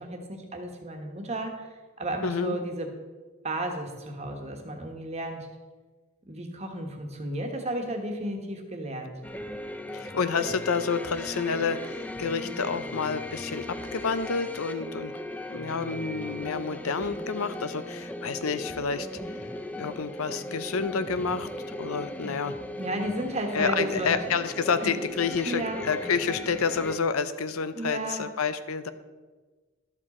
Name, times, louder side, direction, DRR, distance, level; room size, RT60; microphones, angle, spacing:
voice 1, 0.0-1.7 2.0-2.9 3.4-5.5 6.3-9.1 22.8-24.2 24.8-24.9 25.5-25.8 27.7-28.2, right 1 dB, 30° right, 3 dB, 1.3 m, -33 dB
voice 2, 2.2-2.6 9.9-15.1 15.5-19.5 19.8-22.6 23.5-28.9, left 5 dB, 90° left, 12 dB, 0.6 m, -29 dB
sound 1, 9.2-27.0, left 1 dB, 5° left, 0.4 m, -38 dB
12.0 x 7.3 x 4.3 m, 1.3 s
head